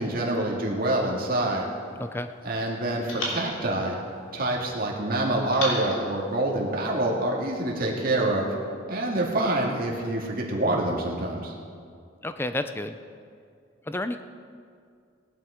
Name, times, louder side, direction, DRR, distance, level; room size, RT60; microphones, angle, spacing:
voice 1, 0.0-1.6 2.4-4.0 4.3-8.5 8.9-11.5, right 1 dB, 45° right, -2 dB, 2.2 m, -26 dB
sound 1, 1.3-2.5 3.1-4.7 5.5-7.1, left 1 dB, 85° left, 3.2 m, -37 dB
voice 2, 2.0-2.3 12.2-13.0 13.9-14.2, left 1 dB, 10° left, 9 dB, 0.5 m, -30 dB
17.5 x 11.0 x 5.0 m, 2.3 s
head